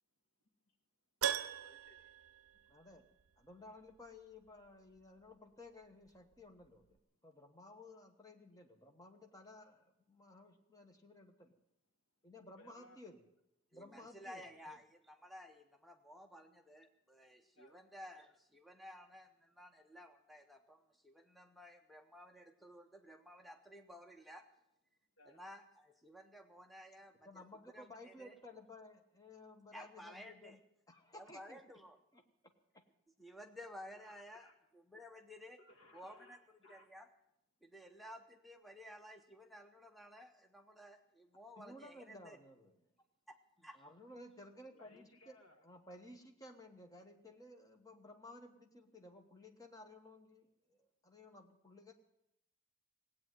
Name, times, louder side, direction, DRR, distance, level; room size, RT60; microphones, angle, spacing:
Keyboard (musical), 1.2-3.3 3.5-3.6 6.3-6.4 6.6-6.7, right 9 dB, 80° right, 0.5 m, -40 dB
voice 1, 1.4-2.0 12.6-13.0 17.6-17.8 25.2-25.4 34.0-34.6 35.6-36.9 44.8-45.6, left 2 dB, 70° left, 6 dB, 1.7 m, -63 dB
voice 2, 2.7-3.1 3.4-11.5 12.2-13.2 13.7-14.8 27.2-30.6 30.9-31.6 32.1-32.2 32.7-32.8 41.6-42.8 43.7-45.4 45.6-51.9, left 2 dB, 15° left, 4 dB, 1.2 m, -56 dB
voice 3, 13.7-24.4 25.3-27.4 27.7-28.3 29.7-30.6 31.1-32.0 33.2-35.6 35.9-36.4 36.7-37.1 37.6-42.4 43.3-43.8, equal, ahead, 5 dB, 0.7 m, -55 dB
17.5 x 8.7 x 9.2 m, 0.82 s
head